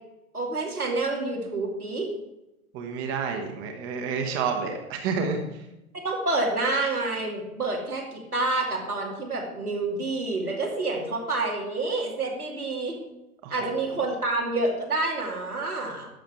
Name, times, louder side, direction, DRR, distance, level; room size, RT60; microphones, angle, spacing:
voice 1, 0.3-2.1 6.0-13.0 13.5-16.1, right 2 dB, 85° right, -2 dB, 2.7 m, -28 dB
voice 2, 2.7-5.4 13.4-13.7, right 5 dB, 30° right, 4 dB, 1.2 m, -29 dB
11.5 x 7.1 x 4.5 m, 0.91 s
figure-of-eight pair, 100°, 43 cm